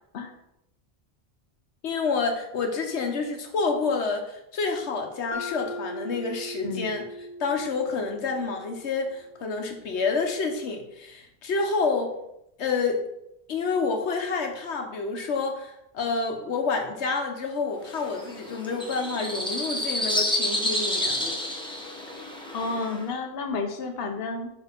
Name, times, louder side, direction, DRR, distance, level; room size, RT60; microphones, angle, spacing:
voice 1, 1.8-12.1 12.6-13.0 13.5-21.3, left 4 dB, 85° left, 3 dB, 1.2 m, -28 dB
Mallet percussion, 5.3-9.3, left 1 dB, 25° left, 0.4 m, -39 dB
sound 1, 17.9-23.0, left 1 dB, 5° left, 1.0 m, -29 dB
voice 2, 22.5-24.5, left 4 dB, 65° left, 3 dB, 1.0 m, -31 dB
5.6 x 4.6 x 5.1 m, 0.83 s
omnidirectional pair, 1.1 m